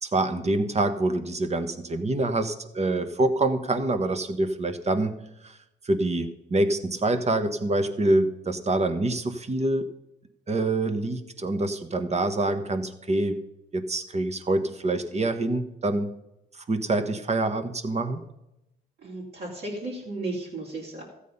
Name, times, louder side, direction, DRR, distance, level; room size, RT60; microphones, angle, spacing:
voice 1, 0.0-5.1 5.4-5.6 5.8-9.9 10.5-13.4 13.7-16.1 16.5-18.2, right 2 dB, 35° right, 10 dB, 1.3 m, -26 dB
voice 2, 19.0-21.0, right 2 dB, 55° right, -5 dB, 3.1 m, -34 dB
13.5 x 8.4 x 5.5 m, 0.89 s
cardioid pair, 90°, 20 cm